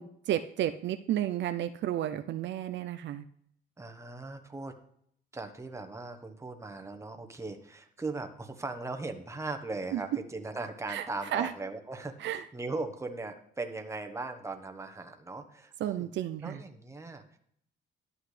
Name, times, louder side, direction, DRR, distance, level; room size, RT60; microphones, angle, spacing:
voice 1, 0.0-3.2 9.9-10.0 10.9-11.1 11.3-11.5 12.2-12.4 15.8-16.6, right 11 dB, 65° right, 9 dB, 0.4 m, -32 dB
voice 2, 3.8-4.7 5.3-16.1 16.4-17.2, right 3 dB, 15° right, 5 dB, 1.1 m, -39 dB
11.5 x 7.8 x 3.3 m, 0.68 s
cardioid pair, 90°, 20 cm